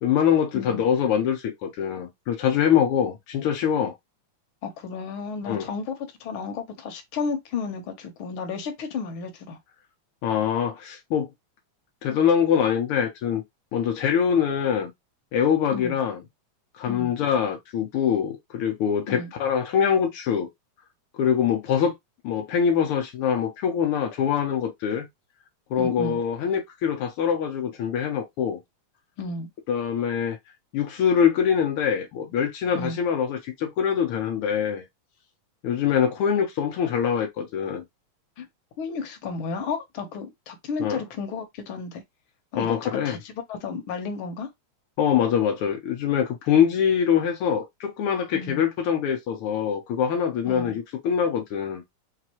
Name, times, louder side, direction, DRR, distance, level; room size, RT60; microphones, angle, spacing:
voice 1, 0.0-3.9 5.5-5.7 10.2-11.3 12.0-13.4 13.7-14.9 15.3-16.2 16.7-20.5 21.1-21.9 22.2-25.1 25.7-28.6 29.7-30.4 30.7-34.8 35.6-37.8 40.8-41.0 42.5-43.2 45.0-51.8, left 8 dB, 85° left, 1.2 m, -24 dB
voice 2, 4.6-5.9 6.2-9.6 15.7-15.9 16.9-17.1 19.1-19.3 25.8-26.2 29.2-29.5 32.7-33.0 38.4-38.5 38.8-42.0 42.5-44.5 48.3-48.6 50.5-50.8, left 5 dB, 65° left, 1.4 m, -33 dB
5.8 x 2.5 x 2.9 m
omnidirectional pair, 3.3 m